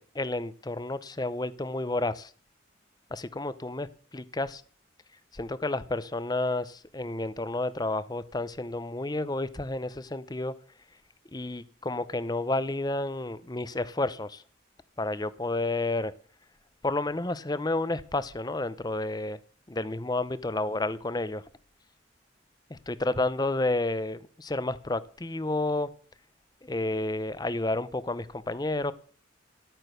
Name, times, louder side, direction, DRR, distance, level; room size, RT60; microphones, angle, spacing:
voice 1, 0.0-2.3 3.1-4.6 5.3-10.5 11.3-14.4 15.0-16.1 16.8-19.4 19.7-21.4 22.7-25.9 26.6-28.9, left 2 dB, 20° left, 15 dB, 0.7 m, -31 dB
12.0 x 9.1 x 6.6 m, 0.43 s
head